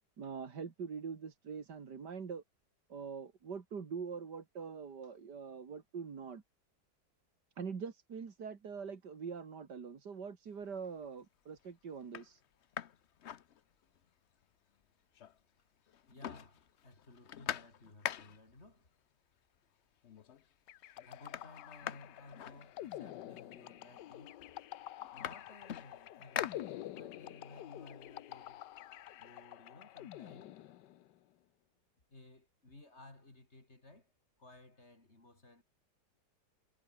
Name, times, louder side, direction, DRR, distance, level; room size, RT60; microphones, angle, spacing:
voice 1, 0.2-2.4 2.9-6.4 7.6-12.4, right 6 dB, 60° right, 2.7 m, -44 dB
sound 1, 10.6-11.1 11.6-11.7 12.0-14.1 14.4-14.5 14.8-15.6 15.9-18.6 19.5-19.6 20.0-20.5 20.8-23.2 24.0-24.1 24.4-27.2 27.6-29.4, left 9 dB, 55° left, 0.7 m, -45 dB
voice 2, 16.1-18.9 21.0-24.5 25.1-28.6 29.2-30.8 32.1-34.1 34.4-35.6, left 2 dB, 35° left, 4.4 m, -57 dB
sound 2, 20.7-31.1, left 13 dB, 70° left, 1.3 m, -48 dB
omnidirectional pair, 2.0 m